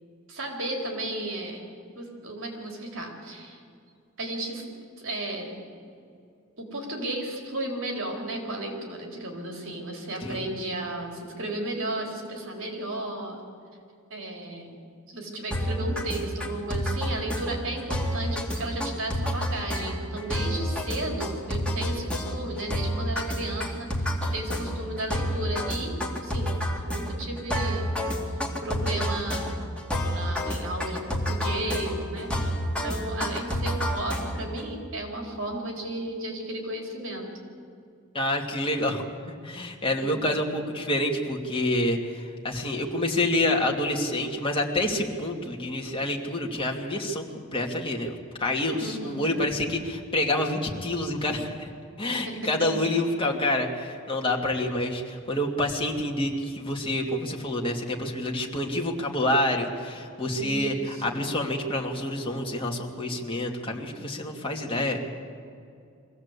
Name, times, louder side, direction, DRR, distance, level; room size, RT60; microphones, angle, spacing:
voice 1, 0.3-1.6 2.0-3.6 4.2-4.6 5.0-5.6 6.6-13.4 14.1-14.7 15.1-26.6 26.9-27.9 28.6-29.6 30.1-32.3 32.8-37.3 40.0-40.1 48.8-49.2 52.1-52.4 60.4-61.2, right 1 dB, 65° right, 1 dB, 4.1 m, -34 dB
sound 1, 15.5-34.6, equal, 5° left, 2.4 m, -29 dB
voice 2, 38.1-39.1 39.4-47.2 47.5-51.7 52.0-65.0, left 1 dB, 25° left, 0 dB, 2.4 m, -27 dB
23.0 x 16.5 x 8.3 m, 2.5 s
head